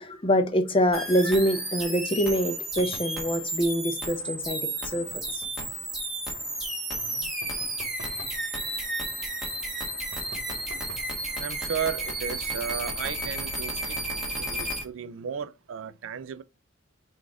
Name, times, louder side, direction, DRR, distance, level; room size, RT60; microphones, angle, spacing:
voice 1, 0.0-5.4, equal, 25° left, 0.6 m, -25 dB
sound 1, 0.9-14.8, right 1 dB, ahead, 1.2 m, -32 dB
sound 2, 2.7-3.2 5.1-5.9 7.4-8.4 10.1-11.2 12.9-13.5, right 2 dB, 60° right, 1.0 m, -47 dB
voice 2, 6.9-7.3 11.4-14.0 14.4-16.4, right 7 dB, 80° right, 0.3 m, -34 dB
4.0 x 2.4 x 4.6 m
head